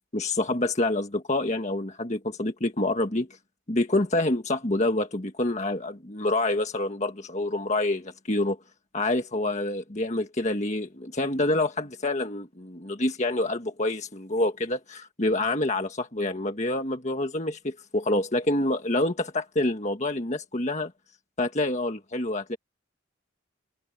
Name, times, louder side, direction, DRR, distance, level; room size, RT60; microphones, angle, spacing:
voice 1, 0.1-3.3 3.7-8.6 8.9-20.9 21.4-22.6, left 2 dB, 35° left, 1.6 m, -27 dB
head